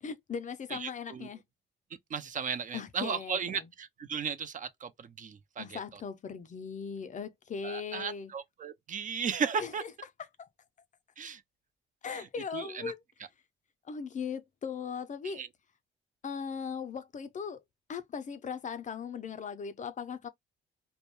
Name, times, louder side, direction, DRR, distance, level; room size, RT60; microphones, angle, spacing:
voice 1, 0.0-1.4 2.7-3.7 5.6-8.3 9.6-9.9 10.2-10.5 12.0-13.0 13.9-15.4 16.2-17.6 17.9-20.3, left 6 dB, 40° left, 0.4 m, -39 dB
voice 2, 0.7-1.3 2.1-5.8 7.6-9.8 11.2-11.4 12.5-12.9 15.3-15.5, right 6 dB, 40° right, 0.4 m, -35 dB
2.2 x 2.1 x 3.0 m
cardioid pair, 90°, 20 cm